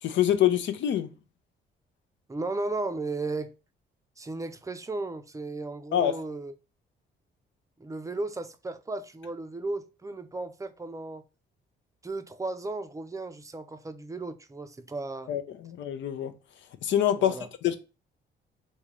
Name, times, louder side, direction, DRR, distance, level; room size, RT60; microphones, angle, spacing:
voice 1, 0.0-1.1 5.9-6.2 15.3-16.3 16.8-17.3 17.6-17.8, left 11 dB, 70° left, 0.6 m, -25 dB
voice 2, 2.3-3.5 4.2-6.5 7.8-11.2 12.0-15.3 17.1-17.5, right 2 dB, 15° right, 0.5 m, -35 dB
3.6 x 2.8 x 3.0 m
cardioid pair, 90°, 20 cm